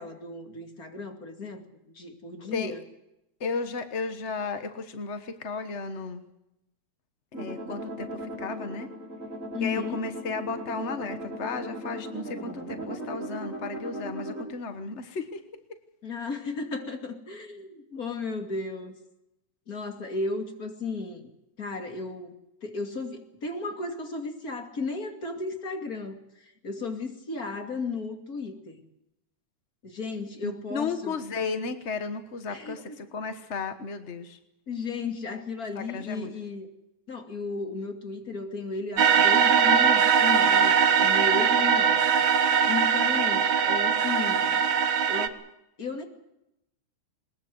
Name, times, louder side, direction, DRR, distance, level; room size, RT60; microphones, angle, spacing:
voice 1, 0.0-1.6 1.9-2.8 9.5-10.0 16.0-19.0 19.7-21.3 21.6-22.3 22.6-28.8 29.8-31.2 32.5-33.0 34.7-36.7 37.1-42.2 42.7-44.6 45.1-45.4 45.8-46.0, left 3 dB, 30° left, 5 dB, 2.7 m, -34 dB
voice 2, 3.4-6.2 7.3-8.9 9.6-15.4 17.9-18.0 30.4-34.4 35.7-36.3, left 4 dB, 55° left, 9 dB, 0.7 m, -34 dB
sound 1, 7.3-14.4, right 1 dB, 25° right, 5.1 m, -37 dB
sound 2, 39.0-45.3, right 7 dB, 55° right, 1.6 m, -21 dB
22.0 x 20.5 x 7.9 m, 0.86 s
omnidirectional pair, 3.4 m